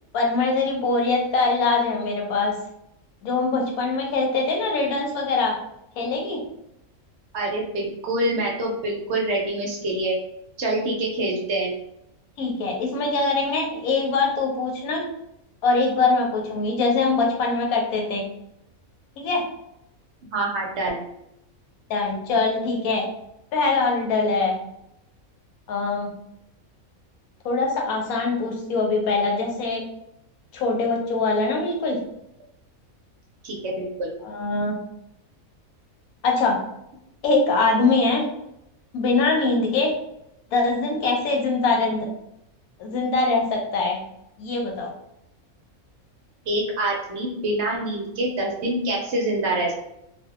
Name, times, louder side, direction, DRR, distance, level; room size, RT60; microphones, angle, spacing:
voice 1, 0.1-2.5 3.2-5.6 6.0-6.4 12.4-15.0 15.6-18.2 19.2-19.4 21.9-23.0 23.5-24.6 25.7-26.1 27.4-29.8 30.5-32.0 34.2-34.8 36.2-36.6 37.2-38.3 38.9-39.9 40.5-42.1 42.8-44.0 44.4-44.9, left 3 dB, 90° left, 1 dB, 1.1 m, -23 dB
voice 2, 7.3-10.2 10.6-11.7 20.3-21.0 33.4-34.1 46.5-49.7, right 1 dB, 65° right, -2 dB, 0.7 m, -26 dB
2.6 x 2.2 x 2.4 m, 0.81 s
omnidirectional pair, 1.5 m